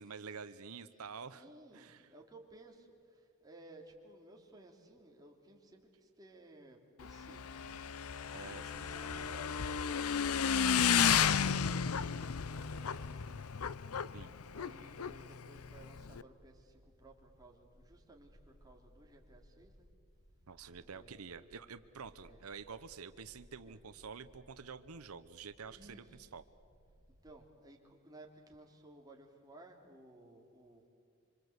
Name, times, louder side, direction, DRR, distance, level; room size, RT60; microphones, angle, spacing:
voice 1, 0.0-1.4 1.7-2.1 8.3-9.3 14.1-14.3 20.5-26.4, right 5 dB, 90° right, 12 dB, 0.8 m, -48 dB
voice 2, 1.3-8.0 8.7-9.7 10.9-13.4 14.5-19.9 20.9-21.5 22.2-22.4 23.6-23.8 25.7-26.3 27.2-30.9, right 2 dB, 20° right, 0 dB, 3.2 m, -58 dB
Motorcycle / Engine, 7.0-16.2, left 7 dB, 85° left, 0.7 m, -33 dB
sound 1, 14.3-27.3, equal, 30° left, 7.8 m, -64 dB
26.0 x 26.0 x 8.0 m, 2.2 s
head